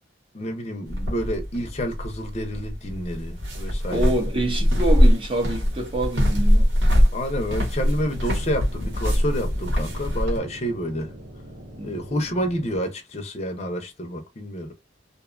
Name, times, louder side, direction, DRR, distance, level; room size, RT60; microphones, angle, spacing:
voice 1, 0.3-4.1 7.1-11.1 11.8-14.7, equal, 35° left, 0.6 m, -29 dB
sound 1, 0.9-10.4, equal, 85° right, 1.2 m, -22 dB
voice 2, 3.9-6.7 11.8-12.0, right 1 dB, 25° right, 0.6 m, -26 dB
sound 2, 7.7-12.8, right 1 dB, 60° right, 0.9 m, -42 dB
2.6 x 2.2 x 2.4 m
head